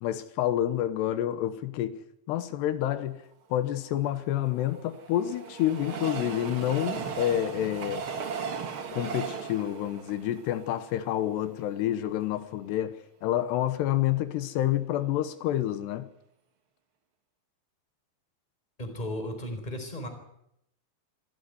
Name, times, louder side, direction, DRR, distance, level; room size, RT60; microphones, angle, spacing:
voice 1, 0.0-2.0 2.3-3.2 3.5-8.0 8.9-16.1, left 12 dB, 85° left, 3.2 m, -28 dB
Train, 4.1-11.4 11.9-12.0 12.2-12.3, right 6 dB, 45° right, 1.9 m, -37 dB
voice 2, 18.8-20.1, left 1 dB, 10° left, 4.0 m, -35 dB
25.5 x 14.5 x 9.6 m
omnidirectional pair, 4.8 m